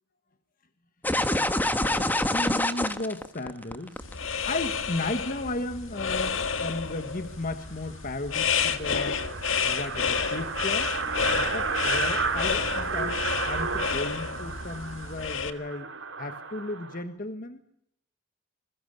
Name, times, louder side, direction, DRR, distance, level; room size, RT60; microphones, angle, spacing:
sound 1, 1.0-4.1, left 1 dB, 10° left, 1.3 m, -25 dB
voice 1, 1.2-4.1 4.4-9.2 9.6-10.9 11.2-15.9 16.2-17.6, left 2 dB, 45° left, 8 dB, 1.4 m, -35 dB
sound 2, 4.0-15.5, left 6 dB, 75° left, 1.9 m, -30 dB
sound 3, 7.1-7.2 7.6-7.7 7.9-8.0 8.3-17.0, right 5 dB, 70° right, 4.1 m, -33 dB
28.0 x 22.0 x 6.7 m, 0.71 s
head